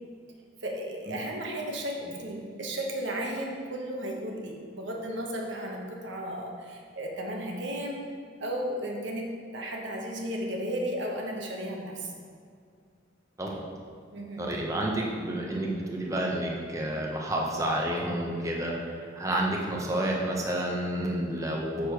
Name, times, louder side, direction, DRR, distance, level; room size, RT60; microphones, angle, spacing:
voice 1, 0.6-8.0 8.4-12.1 14.1-14.5, right 1 dB, 65° right, 0 dB, 1.2 m, -34 dB
voice 2, 14.4-21.9, right 1 dB, 15° right, -2 dB, 0.8 m, -30 dB
6.7 x 6.6 x 4.6 m, 2.2 s
head